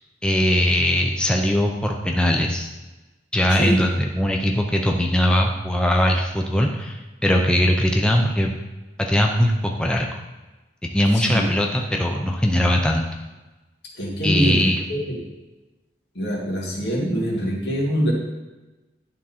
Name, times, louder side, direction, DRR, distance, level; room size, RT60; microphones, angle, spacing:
voice 1, 0.2-2.7 3.3-8.5 9.0-10.1 10.9-13.1 14.2-14.8, equal, 5° left, 1 dB, 0.5 m, -20 dB
voice 2, 3.5-3.8 11.1-11.4 14.0-15.2 16.1-18.1, equal, 75° left, -3 dB, 2.0 m, -24 dB
11.0 x 3.7 x 4.3 m, 1.1 s
head